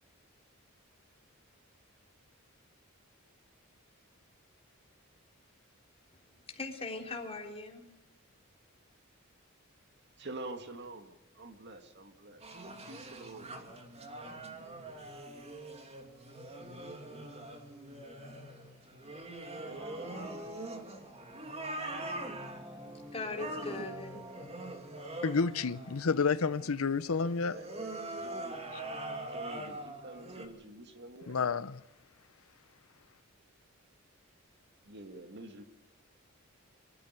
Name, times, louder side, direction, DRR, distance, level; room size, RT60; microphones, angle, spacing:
voice 1, 6.3-7.9 22.9-24.3, left 3 dB, 30° left, 3.6 m, -40 dB
voice 2, 10.2-13.6 19.7-20.5 27.1-27.7 28.1-28.6 28.9-31.4 34.8-35.6, right 2 dB, 55° right, 2.1 m, -48 dB
sound 1, 12.4-30.5, right 2 dB, 30° right, 2.7 m, -43 dB
Brass instrument, 19.5-26.4 26.6-26.7, equal, 10° right, 1.4 m, -52 dB
voice 3, 25.2-27.6 31.3-31.8, left 5 dB, 85° left, 0.7 m, -30 dB
25.0 x 14.0 x 8.1 m
head